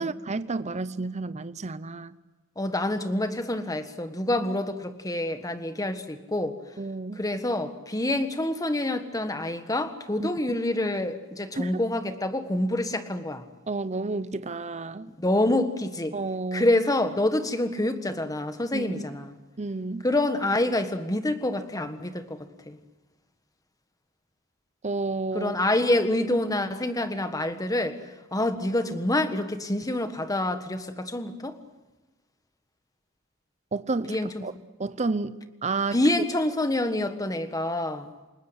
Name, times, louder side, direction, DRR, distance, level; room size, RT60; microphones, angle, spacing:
voice 1, 0.0-2.1 6.8-7.2 10.2-10.6 11.6-11.8 13.7-15.1 16.1-16.7 18.7-19.0 19.6-20.0 24.8-25.6 33.7-34.5 34.8-36.0, right 3 dB, 35° right, 0.7 m, -31 dB
voice 2, 2.6-6.6 7.2-13.4 15.2-16.2 16.5-19.4 20.0-22.4 22.6-22.8 25.3-28.0 28.3-31.6 34.1-34.4 35.9-38.1, left 1 dB, 15° left, 1.5 m, -27 dB
29.0 x 19.5 x 8.1 m
head